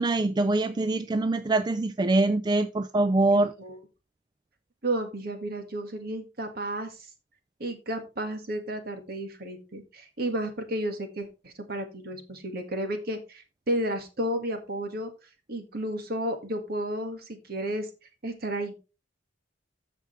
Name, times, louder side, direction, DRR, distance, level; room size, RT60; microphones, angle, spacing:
voice 1, 0.0-3.5, right 2 dB, 25° right, 0.3 m, -24 dB
voice 2, 3.3-3.8 4.8-7.1 7.6-15.1 15.5-17.9 18.2-18.7, right 1 dB, 55° right, 1.8 m, -32 dB
14.0 x 5.1 x 3.2 m
head